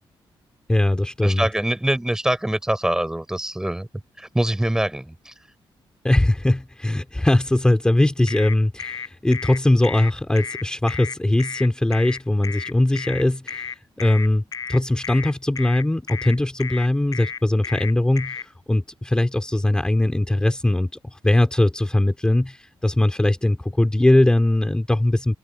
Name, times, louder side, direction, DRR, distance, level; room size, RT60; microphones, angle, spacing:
voice 1, 0.7-1.5 6.0-14.4 14.7-20.9 21.2-25.4, left 1 dB, 10° left, 3.8 m, -20 dB
voice 2, 1.2-3.9 4.2-5.3, right 1 dB, 5° right, 4.3 m, -24 dB
sound 1, 8.3-18.5, left 5 dB, 40° left, 4.7 m, -33 dB
wide cardioid pair, 160°, 9 cm